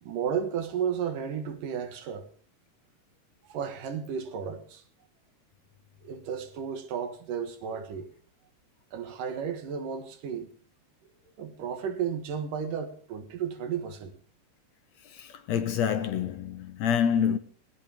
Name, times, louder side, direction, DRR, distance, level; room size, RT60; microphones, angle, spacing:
voice 1, 0.0-2.3 3.5-4.8 6.0-8.1 8.9-10.5 11.4-14.2, right 7 dB, 85° right, 3.3 m, -33 dB
voice 2, 15.1-17.4, left 8 dB, 65° left, 2.0 m, -27 dB
18.5 x 18.0 x 3.6 m
omnidirectional pair, 3.7 m